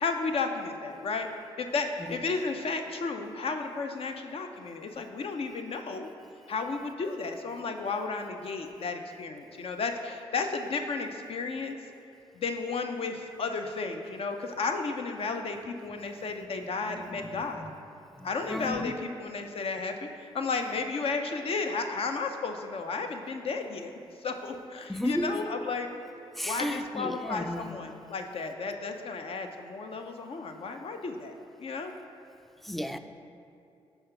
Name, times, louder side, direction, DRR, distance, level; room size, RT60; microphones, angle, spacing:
voice 1, 0.0-1.3 1.6-6.1 6.5-11.8 12.3-17.6 18.2-23.9 24.2-25.9 26.4-31.3 31.6-31.9, left 4 dB, 60° left, 5 dB, 0.5 m, -33 dB
voice 2, 16.8-17.7 18.2-19.0 24.9-25.4 26.4-27.8 32.6-33.0, equal, ahead, 9 dB, 0.3 m, -34 dB
5.6 x 3.4 x 5.6 m, 2.6 s
cardioid pair, 65°, 11 cm